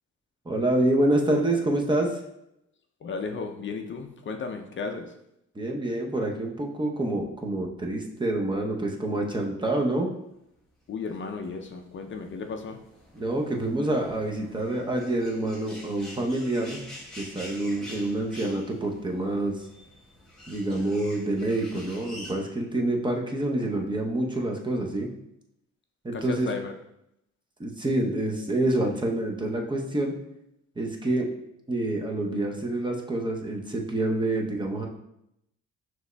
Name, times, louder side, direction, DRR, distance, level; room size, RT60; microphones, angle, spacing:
voice 1, 0.4-2.2 5.5-10.1 13.1-16.8 17.2-19.7 20.5-25.1 26.0-26.5 27.6-30.2 30.8-31.3 31.7-34.9, right 1 dB, 15° right, 1 dB, 0.7 m, -27 dB
voice 2, 3.0-5.1 10.9-12.8 26.1-26.7, left 4 dB, 40° left, 4 dB, 0.5 m, -34 dB
sound 1, 11.2-22.3, left 1 dB, ahead, 1.1 m, -47 dB
6.1 x 3.1 x 2.2 m, 0.81 s
cardioid pair, 90°, 30 cm